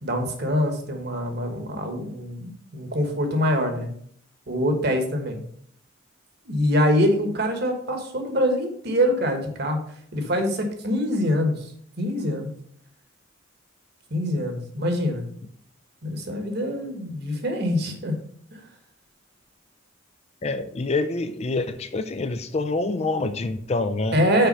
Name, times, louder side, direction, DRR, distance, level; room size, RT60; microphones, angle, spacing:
voice 1, 0.0-3.9 4.5-5.4 6.4-9.8 10.1-11.7 12.0-12.5 14.1-15.3 16.0-18.2 18.5-18.6 24.1-24.5, equal, 55° right, 5 dB, 1.4 m, -24 dB
voice 2, 20.4-24.2, left 3 dB, 30° left, 9 dB, 0.4 m, -26 dB
5.7 x 5.0 x 5.4 m, 0.63 s
head